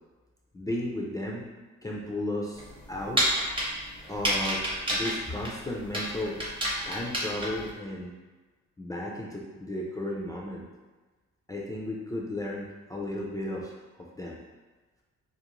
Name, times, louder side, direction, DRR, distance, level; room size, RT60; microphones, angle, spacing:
voice 1, 0.5-1.4 1.8-2.6 2.9-3.2 4.1-6.4 6.8-8.1 8.8-10.6 11.5-13.7 14.1-14.4, left 1 dB, 10° left, -3 dB, 0.3 m, -34 dB
sound 1, 2.5-7.7, equal, 15° right, 0.7 m, -30 dB
2.5 x 2.1 x 2.9 m, 1.3 s
cardioid pair, 90°, 30 cm